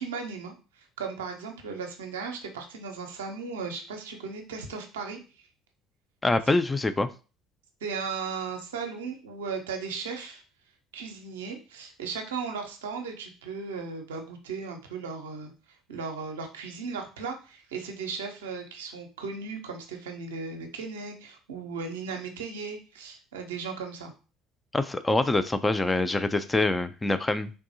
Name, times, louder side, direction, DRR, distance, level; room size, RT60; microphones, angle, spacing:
voice 1, 0.0-5.2 7.8-10.4 10.9-15.5 15.9-24.1, right 5 dB, 80° right, 4 dB, 0.5 m, -36 dB
voice 2, 6.2-7.1 24.7-27.5, left 2 dB, 15° left, 10 dB, 0.3 m, -25 dB
3.4 x 2.6 x 2.7 m, 0.34 s
hypercardioid pair, 60°, 0 cm